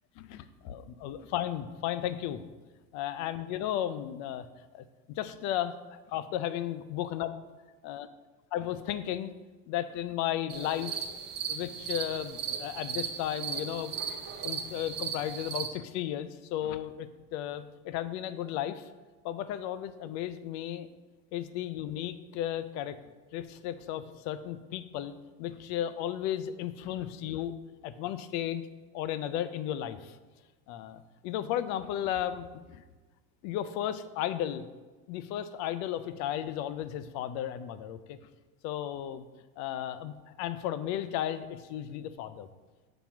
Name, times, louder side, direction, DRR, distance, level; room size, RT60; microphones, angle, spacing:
voice 1, 0.2-2.4 2.9-4.5 4.7-7.3 7.8-8.1 8.5-9.3 9.7-11.1 11.5-13.9 14.4-18.9 19.2-20.9 21.3-23.0 23.3-25.1 25.4-27.6 27.8-28.6 28.9-30.2 30.7-32.8 33.4-34.6 35.1-38.2 38.6-39.2 39.6-42.5, left 11 dB, 50° left, 13 dB, 0.4 m, -34 dB
sound 1, 10.5-15.7, right 7 dB, 30° right, 0.6 m, -37 dB
7.1 x 3.0 x 5.8 m, 1.3 s
cardioid pair, 150°, 38 cm